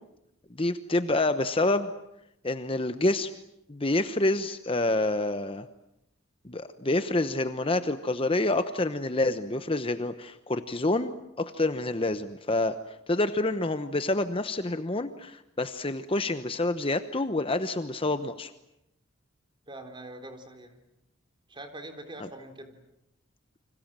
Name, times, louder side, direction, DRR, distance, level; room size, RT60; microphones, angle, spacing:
voice 1, 0.6-1.9 2.4-3.3 3.7-5.7 6.4-12.7 13.1-18.5, left 2 dB, 25° left, 10 dB, 1.0 m, -27 dB
voice 2, 19.7-20.7 21.5-22.7, right 1 dB, 25° right, 7 dB, 3.8 m, -43 dB
30.0 x 26.0 x 7.6 m, 0.84 s
head